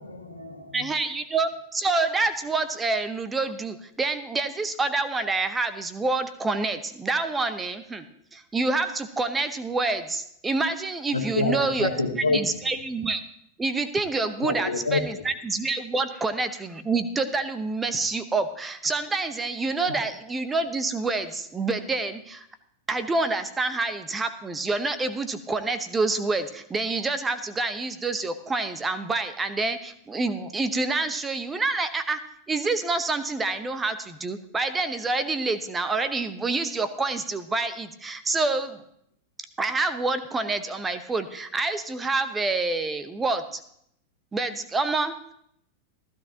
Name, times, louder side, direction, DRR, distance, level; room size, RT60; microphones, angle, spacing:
voice 1, 0.0-0.9 11.1-12.4 14.4-15.2, left 3 dB, 80° left, 1.6 m, -27 dB
voice 2, 0.7-8.0 8.3-11.9 12.3-13.2 13.6-22.5 22.9-32.2 32.5-38.8 39.6-43.6 44.3-45.3, right 3 dB, 15° right, 1.0 m, -27 dB
15.0 x 13.5 x 2.9 m
figure-of-eight pair, 90°, 0 cm